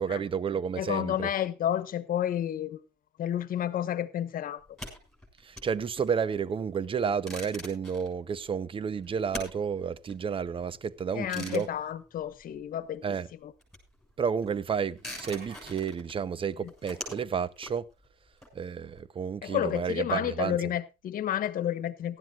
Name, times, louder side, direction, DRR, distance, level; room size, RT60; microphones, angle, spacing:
voice 1, 0.0-1.3 5.4-11.7 13.0-13.3 14.2-17.9 18.5-20.7, right 6 dB, 30° right, 0.8 m, -31 dB
voice 2, 0.8-2.8 3.2-4.6 11.1-13.1 13.4-13.5 16.6-16.7 19.4-22.2, left 11 dB, 55° left, 1.2 m, -31 dB
sound 1, 4.6-13.0 13.2-19.0, left 1 dB, ahead, 6.8 m, -45 dB
sound 2, 14.9-16.0, right 3 dB, 55° right, 6.8 m, -50 dB
18.5 x 12.5 x 2.4 m
cardioid pair, 110°, 17 cm